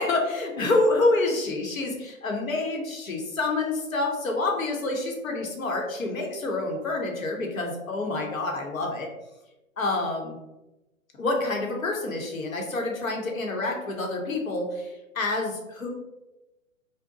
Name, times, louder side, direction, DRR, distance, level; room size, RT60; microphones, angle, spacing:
voice 1, 0.0-9.1 9.8-10.3 11.2-15.9, left 2 dB, 75° left, 1 dB, 0.9 m, -27 dB
2.7 x 2.1 x 3.7 m, 1.0 s
figure-of-eight pair, 125°, 41 cm